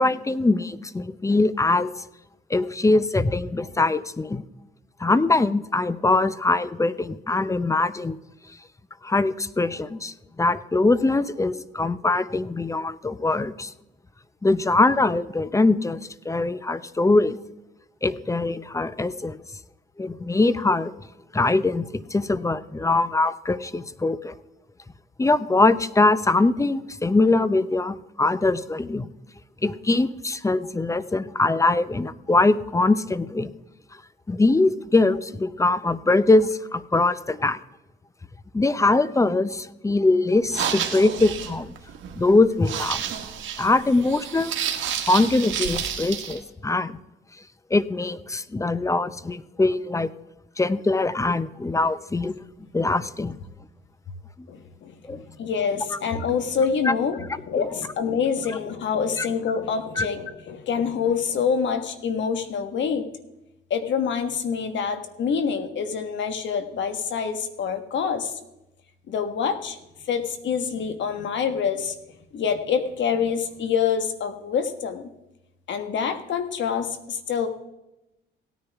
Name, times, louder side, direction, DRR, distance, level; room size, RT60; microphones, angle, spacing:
voice 1, 0.0-1.9 2.5-4.4 5.0-8.2 9.0-13.7 14.4-16.0 16.2-17.4 18.0-19.4 20.0-20.9 21.3-24.3 25.2-29.1 29.6-33.5 34.3-37.6 38.5-41.7 42.2-43.0 43.6-44.5 45.1-47.0 47.7-50.1 50.6-52.4 52.7-53.4 55.1-55.2 56.9-57.0 58.5-58.6 59.2-59.3 60.0-60.1, left 2 dB, 15° left, 15 dB, 0.6 m, -22 dB
sound 1, 40.4-46.4, right 8 dB, 75° right, 1.5 m, -30 dB
voice 2, 54.5-63.1 63.7-68.3 69.1-69.8 70.1-71.9 72.3-75.1 75.7-77.5, left 6 dB, 70° left, 8 dB, 1.5 m, -26 dB
17.0 x 9.8 x 3.5 m, 0.93 s
cardioid pair, 90°, 20 cm